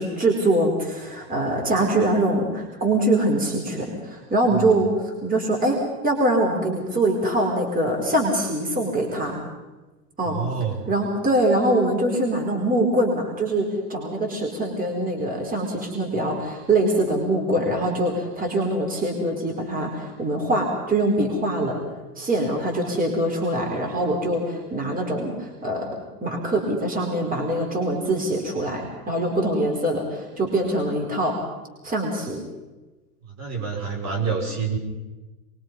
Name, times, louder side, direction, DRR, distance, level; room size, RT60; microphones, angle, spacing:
voice 1, 0.0-5.8 6.0-9.4 10.2-10.4 10.9-21.8 22.2-31.4 31.8-32.4, right 1 dB, 20° right, 0 dB, 4.8 m, -23 dB
voice 2, 10.2-10.8 33.4-34.8, right 5 dB, 35° right, 0 dB, 5.2 m, -27 dB
24.5 x 23.0 x 5.5 m, 1.2 s
hypercardioid pair, 105°, 47 cm